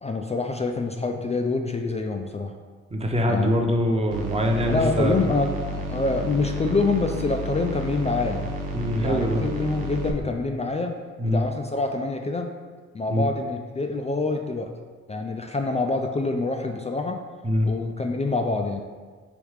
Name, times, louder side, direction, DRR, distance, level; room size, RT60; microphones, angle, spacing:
voice 1, 0.0-2.5 3.3-3.5 4.7-8.5 9.0-11.0 11.3-12.5 12.9-14.7 15.1-17.2 17.7-18.8, left 3 dB, 20° left, 4 dB, 0.3 m, -26 dB
voice 2, 2.9-5.3 8.7-9.4 11.2-11.4 13.1-13.2 17.4-17.7, equal, 15° right, 2 dB, 0.7 m, -23 dB
sound 1, 4.1-10.1, right 1 dB, 90° right, 0.5 m, -31 dB
3.4 x 3.1 x 4.8 m, 1.5 s
hypercardioid pair, 45°, 36 cm